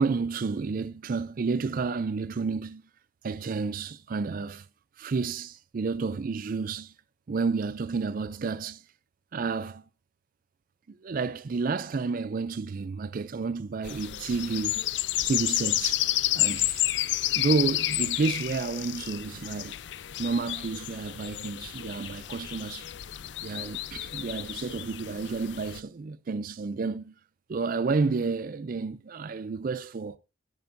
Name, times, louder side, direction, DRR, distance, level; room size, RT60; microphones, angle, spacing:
voice 1, 0.0-2.8 3.2-4.7 5.0-6.9 7.3-8.9 9.3-9.8 10.9-14.8 15.2-16.9 17.3-19.8 20.2-22.9 23.4-27.1 27.5-30.2, right 4 dB, 50° right, 0.4 m, -30 dB
sound 1, 13.8-25.8, left 14 dB, 65° left, 0.4 m, -31 dB
14.5 x 8.9 x 2.6 m
head